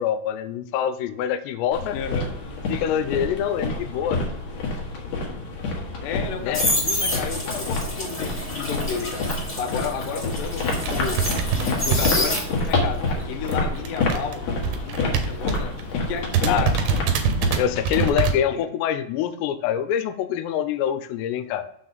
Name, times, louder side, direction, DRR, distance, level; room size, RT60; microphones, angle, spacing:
voice 1, 0.0-2.0 2.7-4.2 6.4-6.6 16.5-16.7 17.6-21.7, left 9 dB, 90° left, 12 dB, 2.8 m, -25 dB
sound 1, 1.7-18.1, left 2 dB, 55° left, 2.0 m, -28 dB
voice 2, 1.9-2.3 6.0-9.3 9.6-11.2 11.5-12.4 12.7-14.4 14.9-16.7 18.5-18.7, left 7 dB, 75° left, 4 dB, 2.3 m, -32 dB
sound 2, 6.1-12.8 13.2-16.1 16.3-16.7, left 1 dB, 25° left, 1.4 m, -29 dB
sound 3, 9.5-9.7 10.2-10.3 10.5-12.9 13.1-15.8 16.1-16.2 16.3-18.3, right 5 dB, 90° right, 3.0 m, -25 dB
6.8 x 6.5 x 4.0 m, 0.75 s
omnidirectional pair, 4.8 m